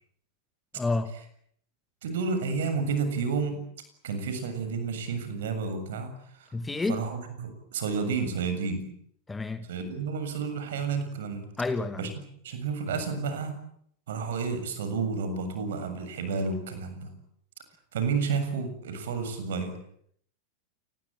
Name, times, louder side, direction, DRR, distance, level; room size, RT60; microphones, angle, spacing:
voice 1, 0.7-1.1 6.5-7.0 9.3-9.7 11.6-12.1, left 3 dB, 10° left, 1.9 m, -29 dB
voice 2, 2.0-3.6 4.0-6.5 6.9-8.8 9.7-11.5 12.0-12.1 12.4-13.5 14.1-17.1 17.9-19.8, right 5 dB, 60° right, 7.3 m, -31 dB
28.0 x 21.0 x 8.9 m
figure-of-eight pair, 90°, 0 cm